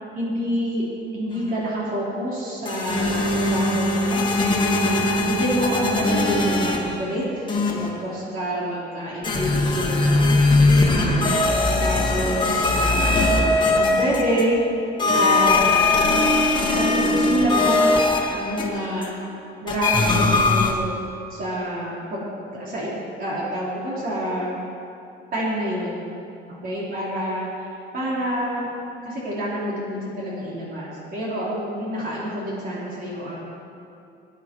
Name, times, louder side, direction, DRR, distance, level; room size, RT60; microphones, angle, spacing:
voice 1, 0.1-0.8 1.1-11.4 11.8-13.5 13.8-14.6 15.1-15.9 16.7-17.9 18.3-19.1 19.6-20.9 21.3-22.9 23.2-24.5 25.3-26.0 26.6-27.5 27.9-28.7 29.0-33.4, equal, 50° right, -6 dB, 4.0 m, -27 dB
sound 1, 2.6-7.1 7.5-8.0 9.2-14.6 15.0-19.1 19.7-20.7, left 2 dB, 25° left, 1.7 m, -20 dB
20.0 x 11.0 x 4.6 m, 2.7 s
cardioid pair, 165°, 19 cm